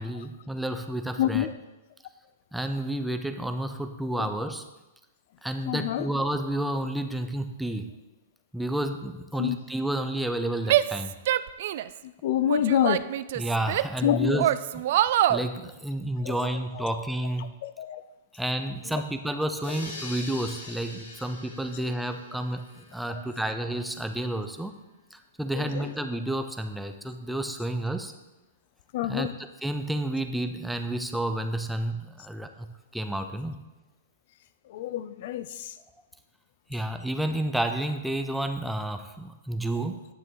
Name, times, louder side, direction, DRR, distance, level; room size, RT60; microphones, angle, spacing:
voice 1, 0.0-1.5 2.5-4.6 5.4-7.9 8.5-11.1 13.4-14.5 14.7-14.8 15.3-17.5 18.3-24.8 25.1-28.1 29.0-33.6 36.7-40.1, right 1 dB, ahead, 7 dB, 0.5 m, -30 dB
voice 2, 1.2-1.5 4.2-4.3 5.7-6.1 9.4-9.6 12.0-13.1 14.0-14.5 16.2-16.4 16.8-16.9 17.6-18.0 23.1-23.2 25.6-25.9 28.9-29.3 34.7-35.7, left 12 dB, 55° left, 14 dB, 0.4 m, -27 dB
Female speech woman speaking / Yell, 10.7-12.0 12.5-14.0 14.4-15.5, right 13 dB, 55° right, 0.3 m, -25 dB
sound 1, 19.6-23.4, left 3 dB, 75° left, 3.0 m, -43 dB
9.6 x 7.0 x 3.9 m, 1.0 s
hypercardioid pair, 150°, 0 cm